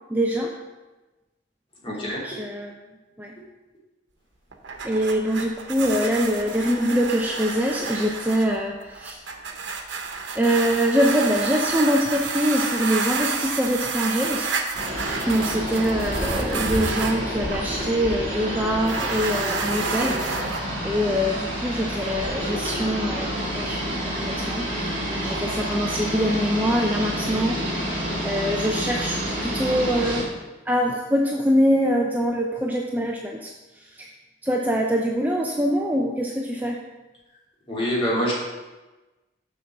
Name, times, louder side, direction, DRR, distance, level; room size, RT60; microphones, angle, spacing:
voice 1, 0.1-0.5 1.9-2.7 3.2-3.3 4.8-9.2 10.4-14.5 15.3-20.5 20.8-23.3 23.5-23.8 24.1-27.6 28.2-30.3 30.7-33.5 33.8-34.1 34.4-36.8, equal, 10° right, 0 dB, 0.6 m, -24 dB
voice 2, 1.8-2.2 37.7-38.3, equal, 30° left, -5 dB, 2.8 m, -25 dB
sound 1, 4.5-17.2 18.7-20.6, right 5 dB, 90° right, 1.0 m, -30 dB
sound 2, 14.7-30.2, equal, 35° right, 3.2 m, -29 dB
7.0 x 5.9 x 6.4 m, 1.1 s
head